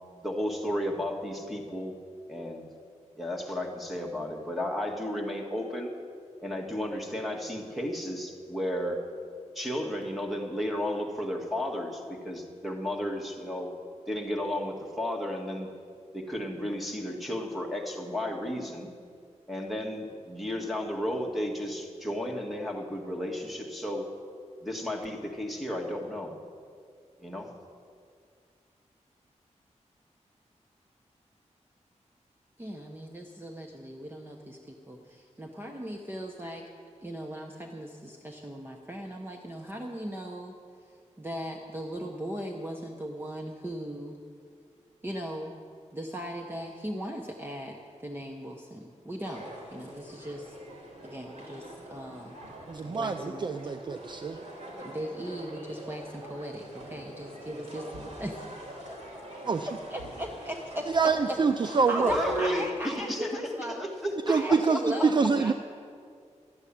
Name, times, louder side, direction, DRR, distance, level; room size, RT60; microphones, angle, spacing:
voice 1, 0.2-2.0 2.3-2.6 3.2-5.9 6.4-9.0 9.6-13.7 14.1-15.7 16.1-18.9 19.5-24.1 24.6-26.3 27.2-27.5 62.0-65.1, equal, ahead, 0 dB, 1.9 m, -33 dB
voice 2, 32.6-36.7 37.0-40.6 41.2-44.2 45.0-45.5 45.9-49.4 49.7-50.6 51.0-52.4 53.0-53.7 54.8-58.5 58.9-59.0 59.9-61.4 61.6-63.8 64.3-65.5, equal, 15° right, 1 dB, 0.9 m, -38 dB
sound 1, 49.2-62.5, right 1 dB, 70° right, 3.3 m, -45 dB
voice 3, 52.7-54.4 59.5-59.7 60.9-62.1 64.3-65.5, right 5 dB, 40° right, 9 dB, 0.4 m, -26 dB
13.0 x 8.0 x 10.0 m, 2.2 s
wide cardioid pair, 120°, 12 cm